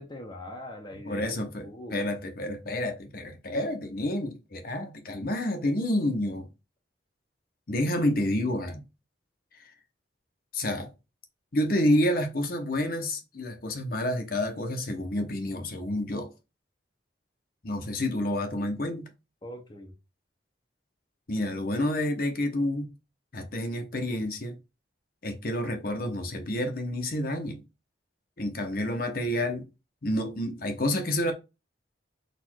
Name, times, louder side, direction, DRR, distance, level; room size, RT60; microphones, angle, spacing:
voice 1, 0.0-2.0 19.4-19.9, left 1 dB, 25° left, 0.7 m, -42 dB
voice 2, 1.1-6.5 7.7-8.8 9.6-9.7 10.5-10.9 11.5-16.3 17.6-19.1 21.3-22.9 23.3-24.6 25.2-27.6 28.4-29.7 30.0-31.3, left 1 dB, 50° left, 0.9 m, -29 dB
4.2 x 2.5 x 4.5 m
head